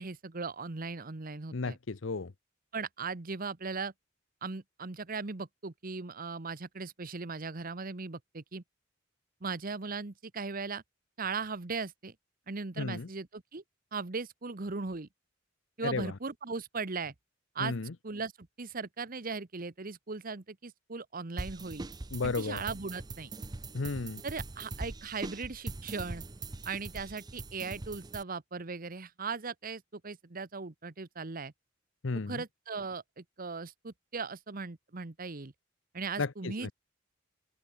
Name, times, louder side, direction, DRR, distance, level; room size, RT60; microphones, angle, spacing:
voice 1, 0.0-1.8 2.7-3.9 4.4-8.6 9.4-10.8 11.2-12.1 12.5-13.6 13.9-15.1 15.8-17.1 17.5-17.7 18.0-21.8 22.2-23.3 24.2-26.2 26.6-31.5 32.3-35.5 35.9-36.7, right 4 dB, 45° right, 1.1 m, -38 dB
voice 2, 1.5-2.3 12.8-13.1 15.8-16.1 17.6-17.9 22.1-22.6 23.7-24.2 32.0-32.4 36.2-36.7, left 3 dB, 70° left, 0.8 m, -33 dB
sound 1, 21.4-28.2, right 2 dB, 20° right, 0.5 m, -42 dB
head